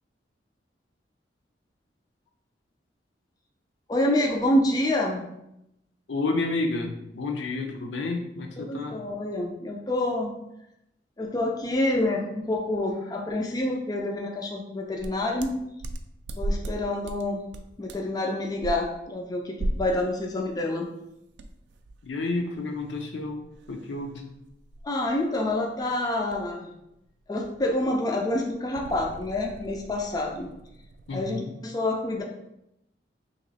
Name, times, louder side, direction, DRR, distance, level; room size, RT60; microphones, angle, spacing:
voice 1, 3.9-5.2 8.6-10.4 11.2-15.5 16.4-17.4 17.8-20.9 24.8-26.7 27.3-30.5 31.1-32.2, left 1 dB, 20° left, 1 dB, 0.3 m, -27 dB
voice 2, 6.1-9.0 22.0-24.3 31.1-31.5, left 3 dB, 80° left, 3 dB, 0.6 m, -30 dB
sound 1, 15.0-16.8 17.0-17.3 17.5-18.1 18.6-18.7 19.6-20.0 20.4-20.5 21.4-26.6 26.9-27.1 27.4-31.2, right 1 dB, 65° right, 0.3 m, -37 dB
3.0 x 2.9 x 4.0 m, 0.83 s
head